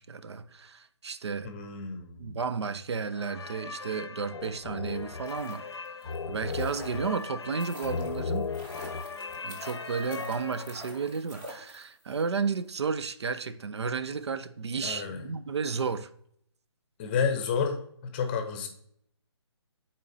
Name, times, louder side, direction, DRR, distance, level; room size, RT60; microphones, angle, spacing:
voice 1, 0.0-1.5 2.2-5.6 6.3-8.5 9.4-16.1, right 5 dB, 65° right, 0.5 m, -33 dB
voice 2, 1.4-2.4 14.8-15.3 17.0-18.7, left 6 dB, 20° left, 0.7 m, -31 dB
sound 1, 3.1-11.0, left 5 dB, 65° left, 0.6 m, -37 dB
sound 2, 5.0-12.2 12.5-12.6, equal, 15° right, 0.8 m, -47 dB
9.6 x 4.2 x 2.6 m
figure-of-eight pair, 150°, 15 cm